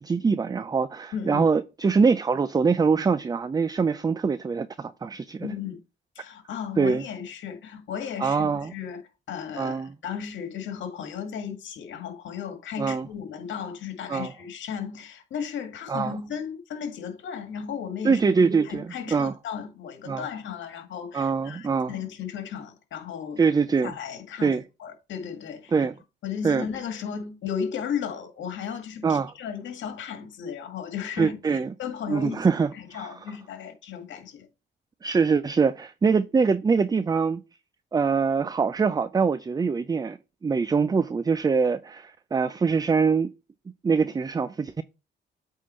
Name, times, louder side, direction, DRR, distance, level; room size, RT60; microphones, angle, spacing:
voice 1, 0.0-5.5 6.8-7.0 8.2-8.7 9.6-9.9 12.8-13.1 14.1-14.3 15.9-16.1 18.0-19.3 20.1-20.3 21.1-21.9 23.4-23.9 24.4-24.6 25.7-25.9 26.4-26.7 29.0-29.3 31.2-31.7 32.1-33.1 35.0-37.4 37.9-43.3 43.8-44.8, right 5 dB, 20° right, 0.4 m, -24 dB
voice 2, 1.1-1.4 5.4-5.8 6.2-9.0 9.3-18.2 18.6-23.4 23.8-25.7 26.2-32.5 32.7-34.5, left 7 dB, 70° left, 1.8 m, -35 dB
8.5 x 3.7 x 4.3 m
cardioid pair, 90°, 20 cm